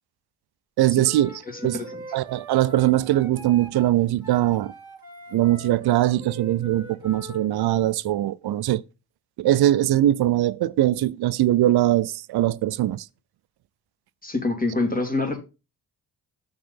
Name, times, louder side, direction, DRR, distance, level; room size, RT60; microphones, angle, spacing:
voice 1, 0.8-1.8 2.1-4.7 5.3-8.8 9.4-13.0, right 14 dB, 65° right, 0.5 m, -21 dB
Wind instrument woodwind instrument, 1.0-7.5, equal, 10° right, 2.7 m, -43 dB
voice 2, 14.2-15.4, left 3 dB, 20° left, 2.2 m, -26 dB
6.6 x 4.1 x 5.5 m
cardioid pair, 60°, 41 cm